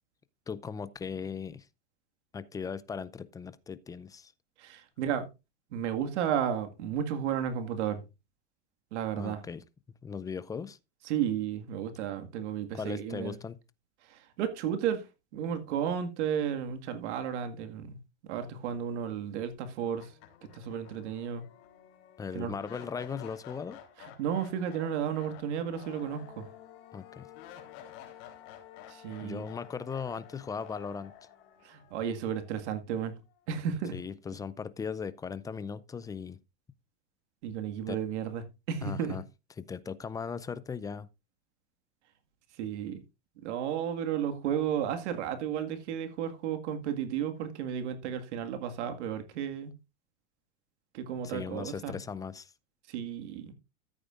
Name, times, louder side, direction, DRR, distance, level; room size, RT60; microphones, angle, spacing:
voice 1, 0.5-1.7 2.3-4.3 9.2-9.6 10.0-10.8 12.7-13.6 22.2-23.8 26.9-27.3 29.2-31.1 33.9-36.4 37.9-38.0 38.8-39.2 39.6-41.1 51.2-52.5, left 6 dB, 10° left, 0.4 m, -38 dB
voice 2, 4.6-5.3 5.7-8.0 8.9-9.4 11.1-13.4 14.0-15.1 15.3-18.0 18.2-20.1 20.5-21.4 22.3-22.5 24.0-26.5 28.9-29.5 31.6-33.1 33.5-34.0 37.4-39.2 42.6-43.0 43.4-49.7 50.9-51.9 52.9-53.5, right 8 dB, 70° right, 1.9 m, -33 dB
sound 1, 19.5-19.6 20.0-33.0, left 10 dB, 60° left, 3.5 m, -51 dB
14.0 x 8.7 x 2.5 m
supercardioid pair, 125°, 36 cm